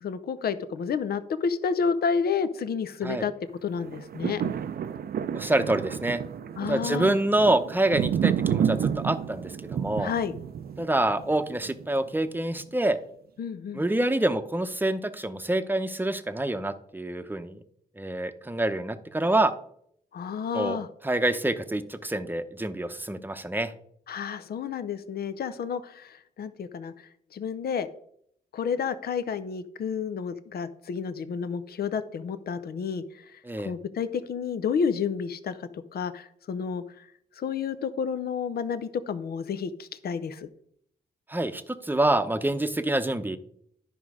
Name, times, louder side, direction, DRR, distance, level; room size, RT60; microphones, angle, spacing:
voice 1, 0.0-3.3 3.6-4.4 6.6-7.2 10.0-10.3 13.4-13.8 20.1-20.9 24.1-27.9 28.5-36.8 37.4-40.5, left 6 dB, 70° left, 13 dB, 0.6 m, -30 dB
sound 1, 3.8-12.1 12.6-12.7, right 8 dB, 65° right, 0.5 m, -30 dB
voice 2, 5.3-6.2 6.6-10.1 10.8-13.0 13.7-17.6 18.0-19.5 20.5-20.8 21.0-23.7 33.4-33.7 41.3-43.4, right 1 dB, 10° right, 11 dB, 0.8 m, -26 dB
10.5 x 5.1 x 4.8 m, 0.70 s
cardioid pair, 55°, 17 cm